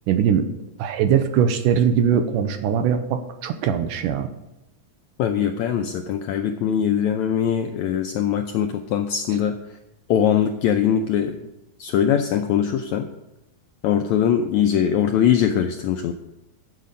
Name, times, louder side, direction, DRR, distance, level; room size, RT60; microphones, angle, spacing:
voice 1, 0.1-0.4 0.8-4.3, right 8 dB, 80° right, 8 dB, 2.2 m, -21 dB
voice 2, 5.2-9.6 10.1-11.4 11.8-13.1 13.8-16.1, left 9 dB, 90° left, 5 dB, 1.6 m, -21 dB
14.0 x 6.7 x 5.2 m, 0.90 s
omnidirectional pair, 4.0 m